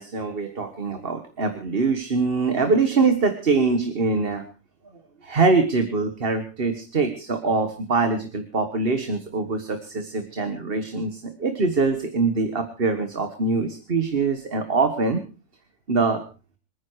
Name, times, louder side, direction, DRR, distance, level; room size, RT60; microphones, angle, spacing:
voice 1, 0.0-4.5 5.2-15.2 15.9-16.2, right 4 dB, 55° right, 8 dB, 1.7 m, -23 dB
26.5 x 9.7 x 4.8 m, 0.35 s
omnidirectional pair, 1.2 m